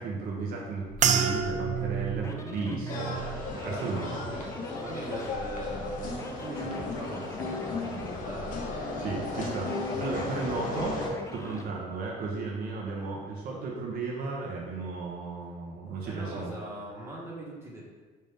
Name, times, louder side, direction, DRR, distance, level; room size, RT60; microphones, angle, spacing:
voice 1, 0.0-4.1 9.0-11.0 11.3-16.5, right 4 dB, 60° right, -3 dB, 0.8 m, -34 dB
sound 1, 0.8-11.7, left 1 dB, 20° left, 0.4 m, -42 dB
sound 2, 1.0-5.5 5.9-6.5 7.1-7.4, right 7 dB, 45° right, 0.4 m, -32 dB
sound 3, 2.9-11.1, left 3 dB, 55° left, 0.9 m, -35 dB
voice 2, 3.5-4.4 4.8-7.8 8.2-8.5 16.0-17.8, right 1 dB, 15° right, -5 dB, 1.2 m, -41 dB
5.3 x 2.6 x 3.4 m, 1.4 s
cardioid pair, 110°, 17 cm